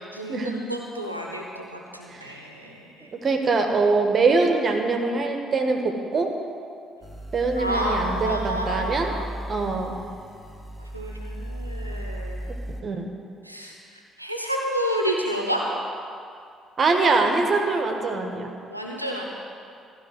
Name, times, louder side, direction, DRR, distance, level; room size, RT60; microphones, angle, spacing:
voice 1, 0.1-3.1 7.6-9.3 10.9-12.4 13.4-13.8 14.2-15.6 18.7-19.2, equal, 90° right, -1 dB, 0.8 m, -30 dB
voice 2, 3.0-6.3 7.3-9.1 9.5-9.9 12.8-13.1 16.8-18.5, right 3 dB, 40° right, 3 dB, 1.3 m, -23 dB
sound 1, 7.0-12.8, equal, 5° right, 2.2 m, -35 dB
15.0 x 5.3 x 9.3 m, 2.4 s
figure-of-eight pair, 45°, 0 cm